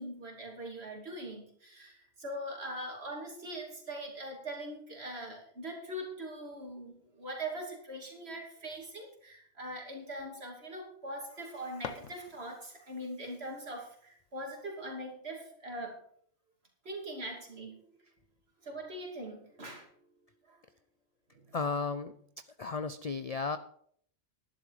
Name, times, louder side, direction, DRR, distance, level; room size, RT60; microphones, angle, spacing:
voice 1, 0.0-16.0 16.8-17.8 18.6-19.9 20.5-20.6 21.3-21.4, right 1 dB, 55° right, 1 dB, 3.1 m, -42 dB
sound 1, 11.4-12.8, left 7 dB, 90° left, 1.3 m, -45 dB
voice 2, 21.5-22.1 22.6-23.6, left 4 dB, 50° left, 11 dB, 0.4 m, -33 dB
11.5 x 11.0 x 4.9 m, 0.62 s
omnidirectional pair, 1.3 m